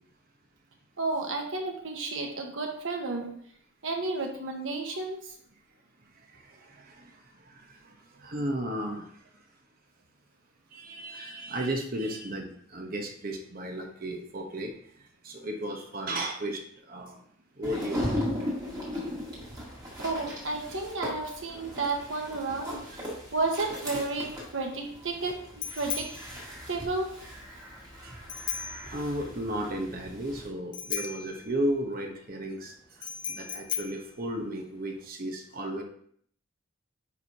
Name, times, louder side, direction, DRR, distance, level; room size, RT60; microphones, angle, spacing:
voice 1, 1.0-3.3 3.8-5.3 20.0-23.0 23.3-26.1 26.7-27.1, right 3 dB, 70° right, 2 dB, 1.3 m, -32 dB
voice 2, 6.3-9.3 10.7-17.2 17.6-18.2 18.7-18.8 19.2-19.4 19.7-19.8 28.0-28.2 28.8-35.8, right 1 dB, 45° right, 2 dB, 1.1 m, -35 dB
sound 1, 17.6-30.5, equal, 20° right, 1.9 m, -38 dB
Bicycle bell, 24.1-35.1, left 8 dB, 25° left, 0.4 m, -39 dB
9.6 x 4.7 x 2.8 m, 0.63 s
head